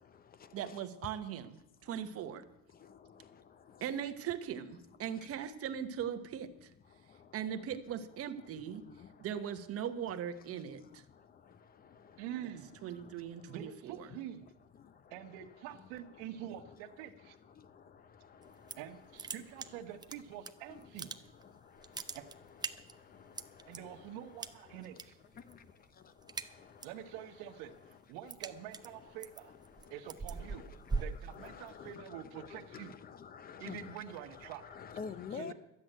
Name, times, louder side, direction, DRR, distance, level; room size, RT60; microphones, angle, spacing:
voice 1, 0.5-2.5 3.8-6.7 7.3-8.9 9.2-11.0 12.8-14.1, right 9 dB, 45° right, 1.1 m, -39 dB
voice 2, 12.2-12.7 13.5-14.5 15.1-17.4 18.8-21.1 22.1-22.3 23.7-25.2 26.8-27.7 28.1-29.5 29.9-30.6 31.0-32.9 33.6-34.6 35.3-35.5, right 10 dB, 85° right, 1.3 m, -46 dB
sound 1, 18.4-18.9 19.2-20.5 20.8-21.5 21.8-23.8 24.4-25.0 25.3-25.7 26.0-27.0 27.4-31.9, right 4 dB, 15° right, 0.5 m, -41 dB
voice 3, 31.3-34.0 34.7-35.5, left 6 dB, 30° left, 0.6 m, -46 dB
12.5 x 7.8 x 9.1 m
cardioid pair, 135°, 32 cm